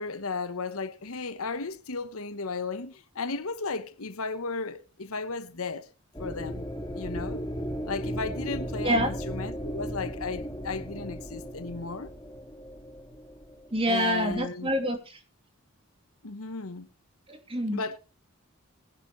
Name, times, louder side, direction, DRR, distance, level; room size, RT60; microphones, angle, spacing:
voice 1, 0.0-5.9 6.2-6.7 6.9-7.4 7.8-12.1 13.9-14.7 16.2-16.9 17.7-18.0, left 4 dB, 75° left, 1.0 m, -34 dB
sound 1, 6.1-14.3, equal, 20° left, 2.1 m, -36 dB
voice 2, 13.7-15.2 17.3-17.8, equal, 25° right, 2.7 m, -27 dB
20.5 x 10.5 x 3.2 m
head